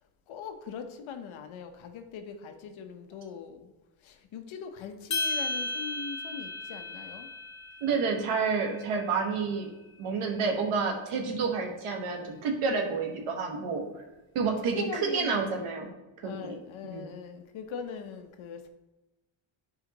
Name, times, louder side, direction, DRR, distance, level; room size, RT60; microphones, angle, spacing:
voice 1, 0.3-3.7 4.0-7.3 11.6-11.8 14.7-15.4 16.2-18.7, left 6 dB, 70° left, 6 dB, 1.0 m, -41 dB
sound 1, 5.1-9.5, left 2 dB, 35° left, 2.0 m, -35 dB
voice 2, 7.8-9.7 10.0-13.9 14.3-15.9 16.2-16.5 16.8-17.1, right 5 dB, 85° right, 2 dB, 1.5 m, -29 dB
10.5 x 4.9 x 3.0 m, 1.0 s
cardioid pair, 115°, 49 cm